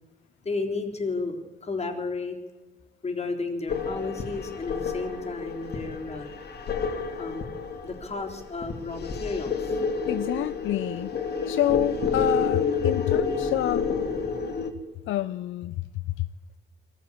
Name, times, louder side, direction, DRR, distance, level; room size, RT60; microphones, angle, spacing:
voice 1, 0.4-2.4 3.0-6.3 7.2-7.5 7.8-9.8, left 3 dB, 30° left, 2 dB, 3.6 m, -32 dB
sound 1, 3.7-14.7, left 5 dB, 55° left, 2.8 m, -29 dB
voice 2, 10.1-11.1 11.5-13.9 15.1-16.3, left 13 dB, 80° left, 14 dB, 0.6 m, -28 dB
22.0 x 15.0 x 8.4 m, 1.2 s
cardioid pair, 90°, 20 cm